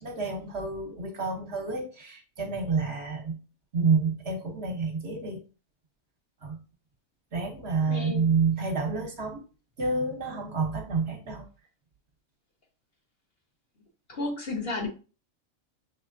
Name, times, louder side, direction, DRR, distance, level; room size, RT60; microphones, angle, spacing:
voice 1, 0.0-3.4 3.7-5.4 6.4-6.6 7.3-9.4 9.8-11.4, right 4 dB, 55° right, 1.1 m, -29 dB
voice 2, 7.8-8.3 14.1-14.9, left 2 dB, 50° left, 1.0 m, -32 dB
6.3 x 3.2 x 2.6 m
omnidirectional pair, 1.4 m